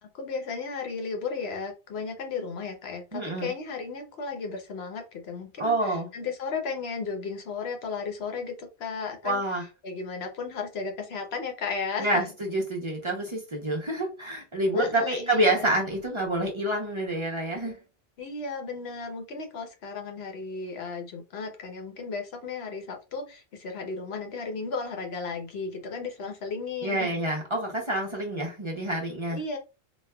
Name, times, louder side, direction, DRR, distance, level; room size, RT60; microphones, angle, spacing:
voice 1, 0.0-9.4 9.8-12.2 14.7-15.8 18.2-27.1 29.3-29.6, left 4 dB, 75° left, 1.0 m, -34 dB
voice 2, 3.1-3.5 5.6-6.1 9.2-9.7 12.0-17.8 26.8-29.4, right 1 dB, 30° right, 0.7 m, -27 dB
4.2 x 2.2 x 2.2 m
omnidirectional pair, 1.1 m